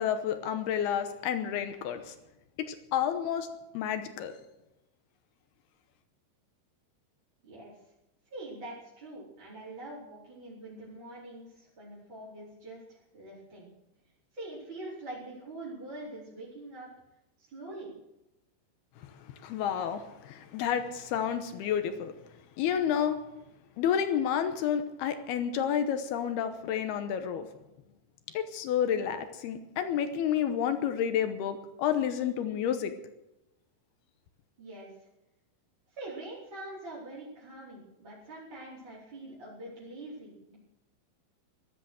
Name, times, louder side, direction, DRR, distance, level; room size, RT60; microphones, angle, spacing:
voice 1, 0.0-2.2 2.6-3.5 3.7-4.3 19.4-22.1 22.6-23.2 23.8-27.5 28.3-32.9, left 9 dB, 75° left, 8 dB, 2.5 m, -30 dB
voice 2, 8.3-13.7 14.3-16.9 17.4-17.9 34.6-34.9 35.9-40.6, right 2 dB, 25° right, -8 dB, 4.8 m, -44 dB
16.5 x 13.0 x 6.4 m, 0.95 s
omnidirectional pair, 5.4 m